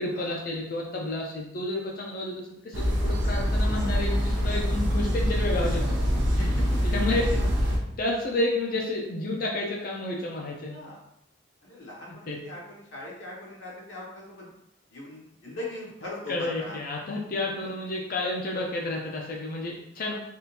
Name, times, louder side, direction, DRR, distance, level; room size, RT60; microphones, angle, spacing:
voice 1, 0.0-6.0 6.8-7.3 8.0-10.7 12.3-12.4 16.3-20.1, left 2 dB, 50° left, -1 dB, 0.5 m, -30 dB
sound 1, 2.7-7.8, equal, 65° right, 0.6 m, -25 dB
voice 2, 6.4-7.2 10.7-11.0 11.6-14.5 14.9-16.8, left 1 dB, 70° left, -5 dB, 1.2 m, -40 dB
3.5 x 2.4 x 2.8 m, 0.80 s
head